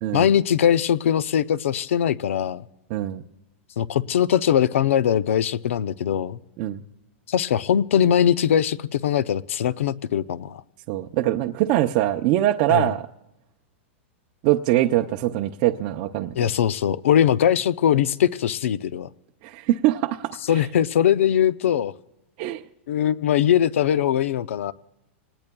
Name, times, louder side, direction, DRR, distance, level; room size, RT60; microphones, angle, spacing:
voice 1, 0.1-2.6 3.8-6.4 7.3-10.6 12.7-12.9 16.4-19.1 20.5-21.9 22.9-24.7, left 9 dB, 90° left, 0.6 m, -21 dB
voice 2, 2.9-3.2 6.6-6.8 10.9-13.1 14.4-16.3 19.4-20.3 22.4-22.6, right 14 dB, 35° right, 0.5 m, -22 dB
27.0 x 19.5 x 2.3 m
supercardioid pair, 165°, 7 cm